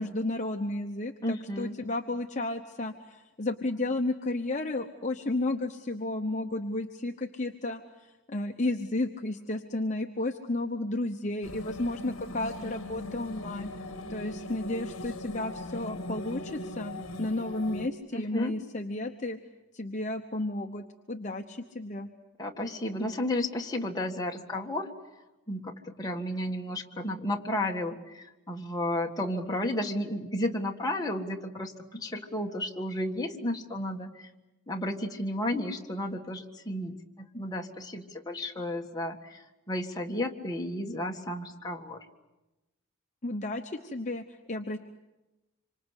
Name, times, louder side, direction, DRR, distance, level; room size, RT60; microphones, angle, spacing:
voice 1, 0.0-19.4 19.7-22.1 43.2-44.8, left 2 dB, 35° left, 3 dB, 0.9 m, -33 dB
voice 2, 1.2-1.8 18.1-18.5 22.4-24.9 25.5-34.3 34.7-42.0, left 1 dB, 15° left, 1 dB, 1.7 m, -33 dB
sound 1, 11.4-17.9, left 2 dB, 65° left, 1.7 m, -39 dB
26.5 x 25.0 x 8.2 m, 1.0 s
head